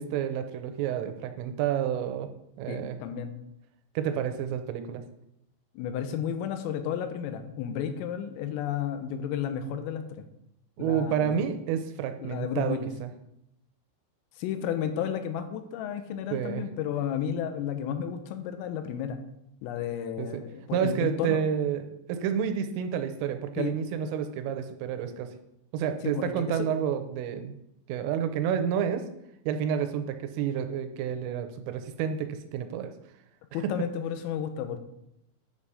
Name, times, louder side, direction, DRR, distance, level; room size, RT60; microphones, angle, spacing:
voice 1, 0.0-2.3 2.6-3.0 4.0-5.0 10.8-13.1 16.3-16.7 20.2-20.4 20.7-25.3 25.7-27.6 27.9-29.1 29.5-32.9 33.6-33.7, right 8 dB, 90° right, 8 dB, 3.3 m, -29 dB
voice 2, 2.7-3.4 5.8-10.1 10.8-11.4 12.2-12.9 14.4-19.2 19.6-21.4 23.6-23.7 26.0-26.6 33.5-34.8, left 8 dB, 85° left, 8 dB, 3.4 m, -32 dB
9.3 x 5.6 x 4.8 m, 0.81 s
omnidirectional pair, 5.8 m